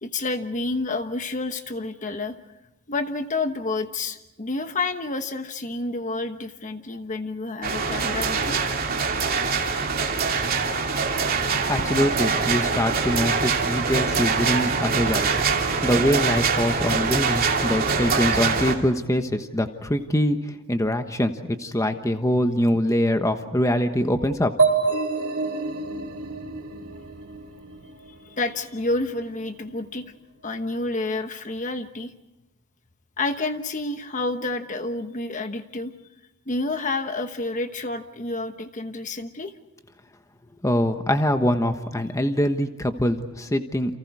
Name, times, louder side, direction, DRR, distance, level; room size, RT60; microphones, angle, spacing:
voice 1, 0.0-2.4 2.9-8.6 28.2-30.1 30.4-32.1 33.2-35.9 36.5-39.5, left 2 dB, 35° left, 8 dB, 1.2 m, -29 dB
sound 1, 7.6-18.8, right 5 dB, 40° right, 2.9 m, -24 dB
voice 2, 11.7-15.4 15.8-24.5 40.6-44.0, left 1 dB, 15° left, 7 dB, 1.2 m, -24 dB
sound 2, 24.6-28.3, right 4 dB, 80° right, 3.0 m, -26 dB
30.0 x 28.5 x 4.8 m, 0.93 s
head